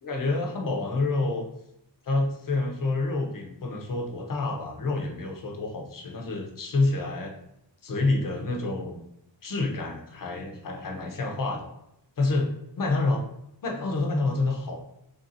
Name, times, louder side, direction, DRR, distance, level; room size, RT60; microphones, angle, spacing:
voice 1, 0.0-1.5 2.0-7.3 7.8-9.0 9.4-11.7 12.2-13.2 13.6-14.8, left 3 dB, 45° left, 2 dB, 0.7 m, -28 dB
3.4 x 2.7 x 3.9 m, 0.79 s
wide cardioid pair, 170°, 46 cm